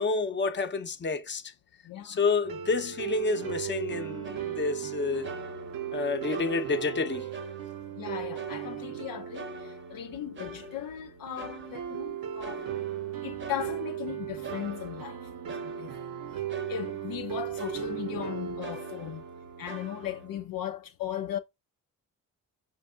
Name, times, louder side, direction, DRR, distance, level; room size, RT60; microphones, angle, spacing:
voice 1, 0.0-1.5 2.0-5.3 5.9-7.3, left 4 dB, 30° left, 0.8 m, -29 dB
voice 2, 1.8-2.2 6.3-6.6 7.9-12.7 13.2-15.9 16.7-19.2 19.6-21.4, left 10 dB, 70° left, 0.6 m, -37 dB
sound 1, 2.4-20.5, right 10 dB, 65° right, 0.8 m, -37 dB
sound 2, 4.2-5.0 5.2-6.0 6.3-8.0 8.3-9.1 9.3-12.1 12.4-14.1 14.4-17.3 17.6-18.3 18.6-20.3, right 2 dB, 35° right, 0.8 m, -45 dB
5.3 x 2.5 x 3.6 m
supercardioid pair, 65°, 35 cm